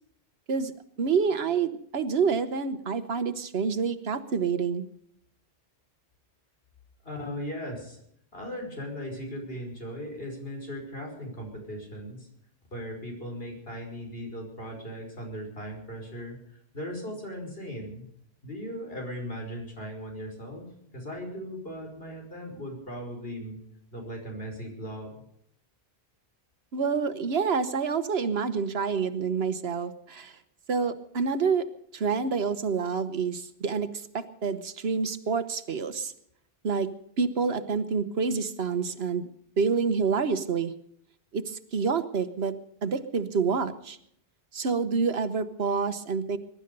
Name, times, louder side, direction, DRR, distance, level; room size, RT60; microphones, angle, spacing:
voice 1, 1.0-4.8 26.7-30.4 30.7-31.7 31.9-33.9 34.1-36.1 36.6-36.9 37.2-39.3 39.6-40.7 41.3-44.0 44.5-46.4, right 5 dB, 80° right, 11 dB, 1.3 m, -28 dB
voice 2, 7.0-8.0 8.3-12.3 12.7-18.1 18.4-20.7 20.9-23.6 23.9-25.1, equal, 70° left, 1 dB, 5.5 m, -38 dB
22.0 x 11.5 x 5.3 m, 0.70 s
omnidirectional pair, 1.0 m